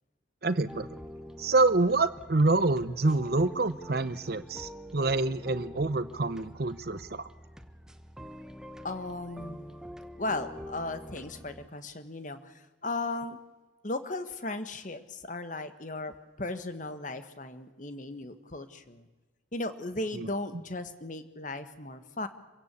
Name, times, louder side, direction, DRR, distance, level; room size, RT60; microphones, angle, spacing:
voice 1, 0.4-0.9 1.4-7.3 20.1-20.3, right 3 dB, 55° right, 13 dB, 0.7 m, -27 dB
sound 1, 0.7-11.7, equal, 5° right, 1.0 m, -46 dB
voice 2, 8.8-9.6 10.2-13.4 13.8-19.1 19.5-22.3, left 2 dB, 40° left, 10 dB, 1.5 m, -36 dB
25.5 x 16.5 x 8.4 m, 1.2 s
head